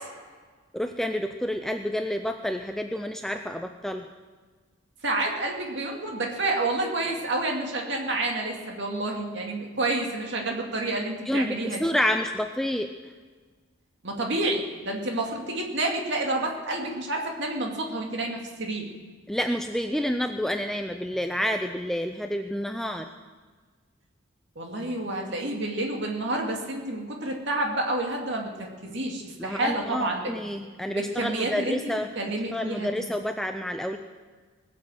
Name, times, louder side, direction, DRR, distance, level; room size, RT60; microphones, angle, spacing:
voice 1, 0.7-4.1 11.3-13.1 19.3-23.1 29.4-32.1 32.5-34.0, equal, ahead, 6 dB, 0.4 m, -29 dB
voice 2, 5.0-11.9 14.0-18.9 24.6-30.3 30.9-31.8 32.2-33.1, right 2 dB, 60° right, 1 dB, 2.3 m, -29 dB
20.0 x 7.5 x 7.7 m, 1.5 s
head